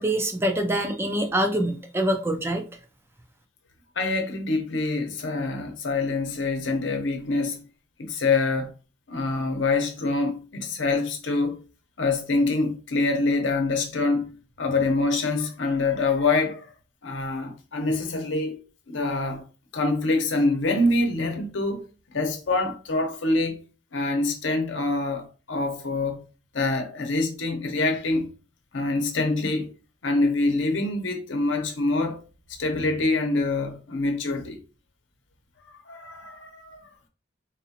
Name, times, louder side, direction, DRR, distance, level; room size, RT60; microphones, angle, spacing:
voice 1, 0.0-2.6, right 1 dB, 15° right, 0.4 m, -25 dB
voice 2, 4.0-7.6 8.0-8.7 9.1-11.6 12.0-14.3 14.6-16.7 17.0-18.6 18.9-19.4 19.7-21.8 22.1-23.6 23.9-26.2 26.5-28.3 28.7-29.7 30.0-32.2 32.6-34.6 35.9-36.9, left 3 dB, 80° left, 0.8 m, -25 dB
3.9 x 2.4 x 2.7 m
head